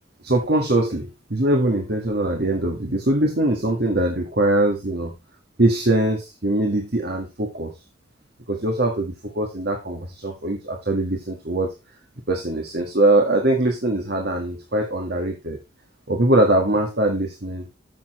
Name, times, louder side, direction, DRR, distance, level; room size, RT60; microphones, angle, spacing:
voice 1, 0.2-5.1 5.6-7.7 8.5-11.7 12.3-15.6 16.1-17.7, right 1 dB, 55° right, 2 dB, 1.6 m, -22 dB
12.5 x 6.9 x 3.1 m, 0.25 s
head